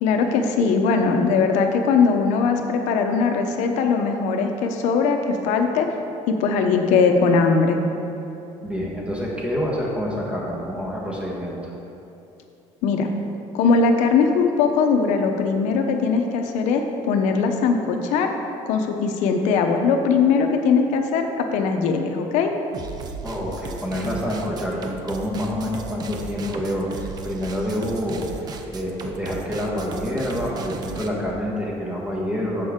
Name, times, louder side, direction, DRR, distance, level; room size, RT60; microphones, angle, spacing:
voice 1, 0.0-5.9 6.3-7.8 12.8-13.1 13.5-18.3 18.7-22.5, left 5 dB, 85° left, 4 dB, 0.9 m, -20 dB
voice 2, 8.6-11.6 23.2-28.5 28.7-32.7, equal, 10° right, -4 dB, 1.5 m, -27 dB
sound 1, 22.7-31.1, right 5 dB, 35° right, 0.6 m, -36 dB
10.5 x 7.6 x 3.7 m, 2.8 s
cardioid pair, 180°, 12 cm